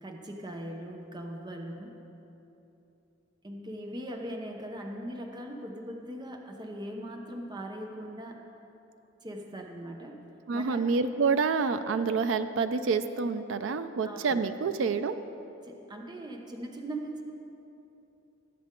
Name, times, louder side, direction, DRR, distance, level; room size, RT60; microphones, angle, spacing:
voice 1, 0.0-2.0 3.4-8.4 9.2-10.2 10.5-10.9 14.0-14.4 15.6-17.2, right 1 dB, 25° right, 2 dB, 0.8 m, -40 dB
voice 2, 10.5-15.2, right 4 dB, 80° right, 10 dB, 0.4 m, -28 dB
18.5 x 7.9 x 3.7 m, 2.9 s
head